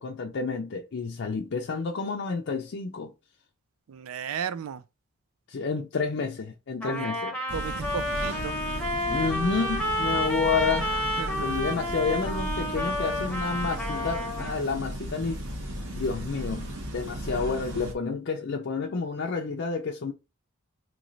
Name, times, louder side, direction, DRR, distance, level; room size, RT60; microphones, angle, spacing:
voice 1, 0.0-3.1 5.5-7.3 9.1-10.9 11.4-15.4 15.9-20.1, left 4 dB, 55° left, 0.5 m, -30 dB
voice 2, 3.9-4.8 6.9-7.1 7.5-8.6 11.2-11.6, right 7 dB, 80° right, 0.4 m, -35 dB
Trumpet, 6.8-14.5, equal, 5° left, 0.8 m, -30 dB
sound 1, 7.5-17.9, equal, 60° right, 1.1 m, -35 dB
3.1 x 3.1 x 3.9 m
head